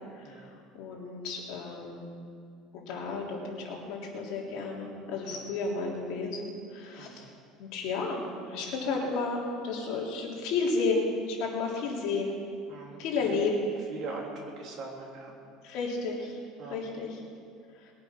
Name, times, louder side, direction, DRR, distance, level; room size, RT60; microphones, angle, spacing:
voice 1, 0.7-2.1 2.7-7.3 7.6-8.2 8.5-12.4 13.0-13.5 15.6-16.4 16.7-17.1 17.8-17.9, left 4 dB, 60° left, -2 dB, 3.3 m, -32 dB
voice 2, 7.0-7.3 12.7-13.0 13.3-13.4 13.9-15.3 16.6-16.8, right 3 dB, 45° right, -1 dB, 3.0 m, -41 dB
21.0 x 8.7 x 6.0 m, 2.3 s
cardioid pair, 155°, 0 cm